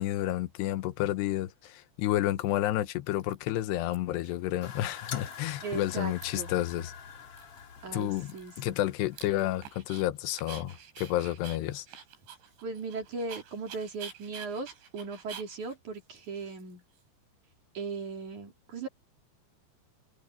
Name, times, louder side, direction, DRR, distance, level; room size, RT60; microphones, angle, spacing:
voice 1, 0.0-6.9 7.9-11.9, left 14 dB, 75° left, 3.0 m, -30 dB
Dog, 1.6-1.7 2.4-2.9 3.2-4.0 4.2-4.4 4.6-5.7 5.9-6.6 6.9-7.0 7.4-10.0 10.4-17.0, right 8 dB, 75° right, 6.4 m, -49 dB
sound 1, 4.6-9.7, left 7 dB, 45° left, 2.1 m, -45 dB
voice 2, 5.6-6.5 7.8-8.8 12.6-16.8 17.7-18.9, right 4 dB, 45° right, 4.9 m, -38 dB
omnidirectional pair, 5.2 m